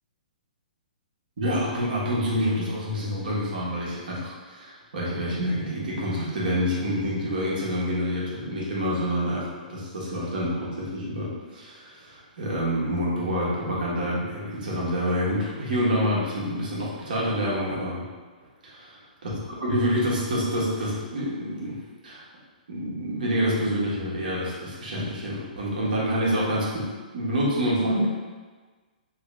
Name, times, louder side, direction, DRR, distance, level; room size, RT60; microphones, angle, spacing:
voice 1, 1.4-18.0 18.6-18.9 19.2-19.3 19.6-21.8 22.0-22.2 22.7-26.9 27.1-28.1, equal, 70° right, -6 dB, 1.3 m, -27 dB
3.1 x 2.9 x 3.3 m, 1.4 s
hypercardioid pair, 140°, 5 cm